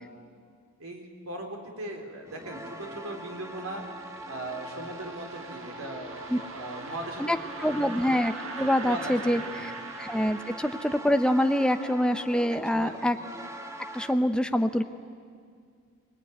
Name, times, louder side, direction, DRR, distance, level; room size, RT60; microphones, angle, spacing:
voice 1, 0.8-3.8 4.3-7.8 8.6-9.6 12.7-13.0, right 1 dB, 90° right, 3 dB, 3.6 m, -39 dB
sound 1, 2.3-14.1, right 1 dB, 15° right, 1.2 m, -42 dB
sound 2, 3.1-10.8, right 4 dB, 70° right, 1.6 m, -43 dB
voice 2, 7.2-9.7 10.0-13.2 13.9-14.8, equal, 5° left, 8 dB, 0.7 m, -25 dB
24.0 x 20.5 x 9.3 m, 2.1 s
head